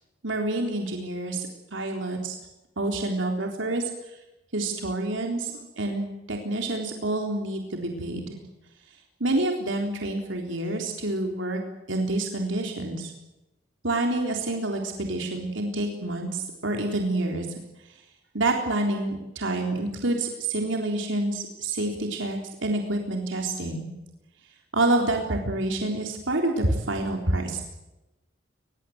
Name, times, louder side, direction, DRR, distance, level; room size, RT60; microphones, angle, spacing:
voice 1, 0.2-2.3 2.8-3.8 4.5-8.3 9.2-11.6 11.9-13.1 13.8-17.5 18.3-23.9 24.7-27.6, right 2 dB, 80° right, 2 dB, 3.7 m, -28 dB
23.0 x 22.0 x 7.9 m, 0.98 s
head